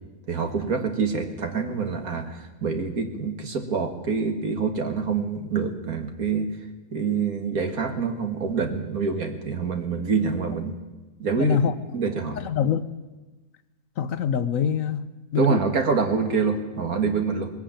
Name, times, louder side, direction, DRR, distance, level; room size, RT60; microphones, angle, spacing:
voice 1, 0.3-6.5 6.9-10.7 11.2-11.6 11.9-12.4 15.4-17.5, right 5 dB, 70° right, 6 dB, 2.2 m, -26 dB
voice 2, 11.4-11.7 12.4-12.8 14.0-15.0 15.3-15.6, left 7 dB, 65° left, 13 dB, 1.2 m, -24 dB
20.5 x 14.5 x 8.9 m, 1.2 s
omnidirectional pair, 1.6 m